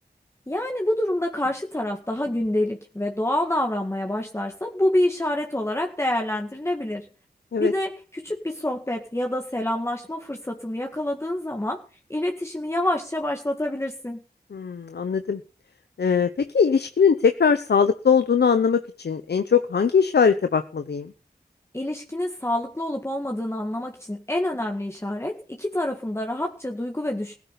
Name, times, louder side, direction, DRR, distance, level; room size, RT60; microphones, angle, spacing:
voice 1, 0.5-7.1 7.6-11.8 12.1-14.2 21.7-27.4, left 1 dB, 15° left, 2 dB, 1.9 m, -27 dB
voice 2, 14.5-15.4 16.0-21.1, left 6 dB, 85° left, 9 dB, 0.9 m, -21 dB
16.0 x 9.8 x 6.9 m, 0.37 s
wide cardioid pair, 60°, 17 cm